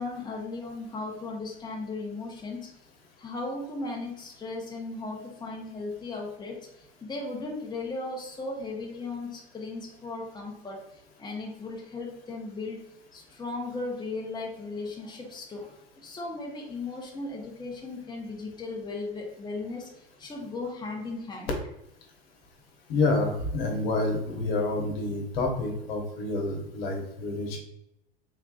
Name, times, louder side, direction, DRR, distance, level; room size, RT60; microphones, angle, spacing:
voice 1, 0.0-2.7 3.2-6.7 7.0-10.8 11.2-12.8 13.1-15.7 16.0-21.5, left 3 dB, 15° left, -2 dB, 1.0 m, -36 dB
voice 2, 22.9-27.6, left 2 dB, 65° left, 1 dB, 1.1 m, -28 dB
3.8 x 3.5 x 2.4 m, 0.83 s
hypercardioid pair, 85°, 32 cm